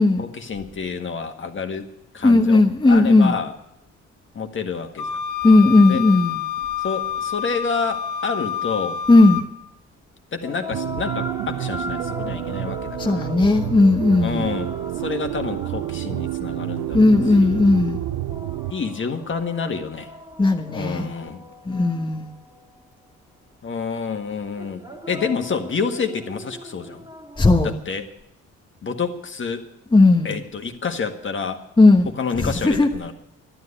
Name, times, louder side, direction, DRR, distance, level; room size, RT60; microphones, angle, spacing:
voice 1, 0.2-2.6 2.8-3.5 4.3-5.1 5.9-6.0 6.8-9.0 10.3-13.3 14.2-17.6 18.7-20.1 20.7-21.4 23.6-27.1 27.6-28.1 28.8-29.7 30.2-31.6 32.2-33.1, left 5 dB, 40° left, 5 dB, 1.7 m, -28 dB
voice 2, 2.2-3.4 5.4-6.4 9.1-9.4 13.0-14.5 16.9-18.0 20.4-21.1 21.6-22.3 27.4-27.8 29.9-30.4 31.8-32.9, left 2 dB, 15° left, 2 dB, 1.1 m, -16 dB
Wind instrument woodwind instrument, 5.0-9.5, left 9 dB, 70° left, 1.1 m, -28 dB
sound 1, 10.4-23.0 24.6-27.6, left 1 dB, 10° right, 2.1 m, -39 dB
sound 2, 10.7-18.7, right 17 dB, 80° right, 0.5 m, -29 dB
12.0 x 9.7 x 9.8 m, 0.83 s
cardioid pair, 75°, 30 cm